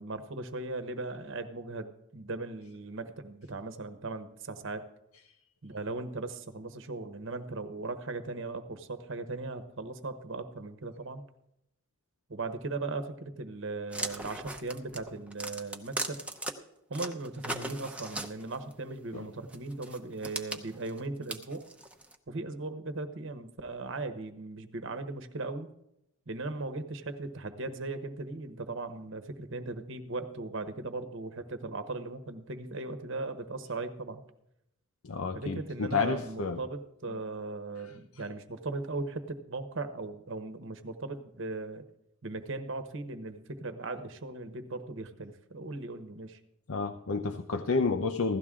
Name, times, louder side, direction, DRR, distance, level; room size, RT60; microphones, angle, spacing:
voice 1, 0.0-4.8 5.6-11.2 12.3-16.2 16.9-21.6 22.3-25.7 26.3-34.2 35.3-41.8 42.2-46.4, right 3 dB, 60° right, 9 dB, 1.1 m, -38 dB
sound 1, 13.9-16.5 16.9-18.7 19.5-22.2, right 2 dB, 5° right, 0.8 m, -38 dB
voice 2, 35.0-36.6 46.7-48.4, left 4 dB, 80° left, 6 dB, 0.7 m, -30 dB
16.0 x 12.5 x 3.7 m, 0.81 s
head